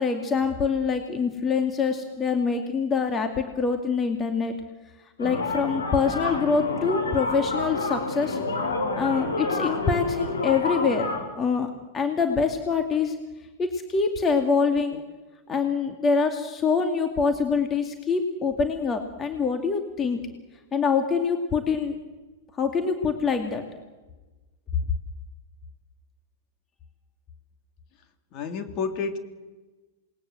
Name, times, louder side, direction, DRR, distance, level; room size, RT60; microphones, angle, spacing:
voice 1, 0.0-4.5 5.2-8.4 8.9-11.1 11.4-13.2 13.6-15.0 15.5-20.2 20.7-22.0 22.6-23.6, left 5 dB, 25° left, 5 dB, 2.5 m, -25 dB
sound 1, 5.2-11.2, left 3 dB, 80° left, 5.7 m, -29 dB
voice 2, 28.3-29.2, left 5 dB, 40° left, 7 dB, 3.2 m, -30 dB
27.5 x 20.5 x 7.8 m, 1.2 s
hypercardioid pair, 105°, 0 cm